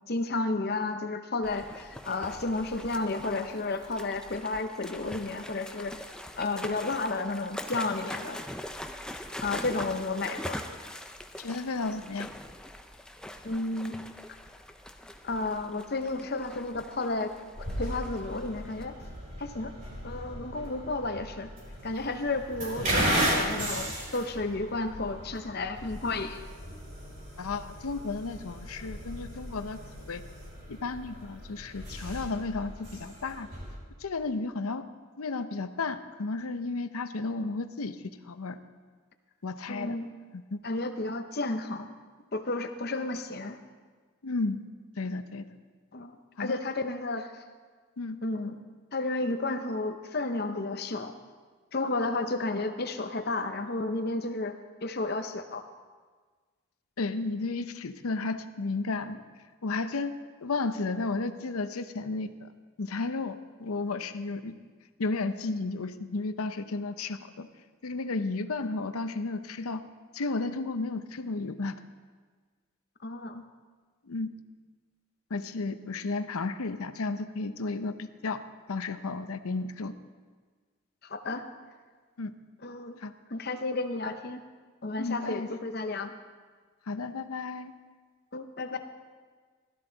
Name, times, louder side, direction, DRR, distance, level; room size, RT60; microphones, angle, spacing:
voice 1, 0.1-6.0 6.4-8.4 9.4-10.6 13.4-14.0 15.2-17.3 17.8-18.9 19.4-19.7 20.0-21.5 21.8-26.4 39.7-40.1 40.6-41.9 42.3-43.6 45.9-47.3 48.2-48.6 48.9-51.1 51.7-55.6 73.0-73.4 81.0-81.4 82.6-83.0 83.3-84.4 84.8-86.1 88.3-88.8, left 2 dB, 45° left, 8 dB, 0.8 m, -32 dB
sound 1, 1.4-18.8, left 1 dB, 5° left, 0.5 m, -43 dB
voice 2, 11.4-12.3 27.4-29.8 30.1-30.2 30.7-33.5 34.0-34.8 35.2-38.6 39.4-40.0 40.3-40.6 44.2-44.6 45.0-45.4 46.4-46.6 48.0-48.2 57.0-59.2 59.6-62.5 62.8-64.6 65.0-67.5 67.8-69.8 70.1-71.8 74.1-74.3 75.3-78.4 78.7-79.9 82.2-82.3 83.0-83.1 85.0-85.5 86.9-87.7, left 3 dB, 90° left, 10 dB, 0.7 m, -33 dB
sound 2, 17.5-33.7, right 1 dB, 40° right, 5.3 m, -36 dB
16.0 x 13.0 x 4.0 m, 1.5 s
head